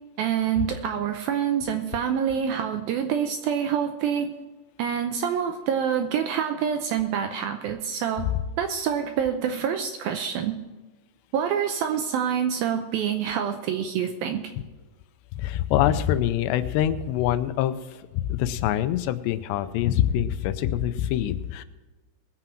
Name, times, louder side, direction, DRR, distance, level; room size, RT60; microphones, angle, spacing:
voice 1, 0.2-4.3 4.8-8.3 8.6-10.6 11.3-14.5, right 8 dB, 80° right, 6 dB, 2.2 m, -26 dB
voice 2, 15.4-18.0 18.3-21.6, left 11 dB, 85° left, 12 dB, 2.9 m, -25 dB
21.0 x 7.7 x 4.5 m, 1.3 s
omnidirectional pair, 4.9 m